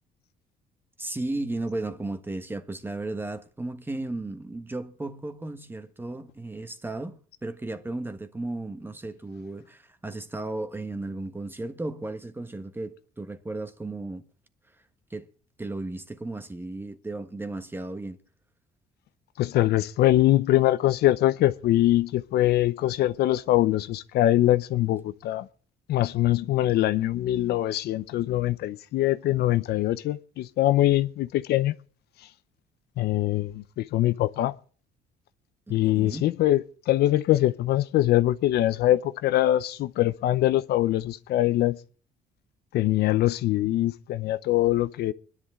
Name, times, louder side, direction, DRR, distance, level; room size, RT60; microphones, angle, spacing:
voice 1, 1.0-14.2 15.1-15.3 15.6-18.2 35.7-36.3, right 2 dB, 10° right, 1.5 m, -35 dB
voice 2, 19.4-25.5 25.9-31.7 33.0-34.5 35.7-41.8 42.7-45.1, left 14 dB, 70° left, 0.8 m, -23 dB
24.5 x 10.5 x 3.7 m
cardioid pair, 110°, 17 cm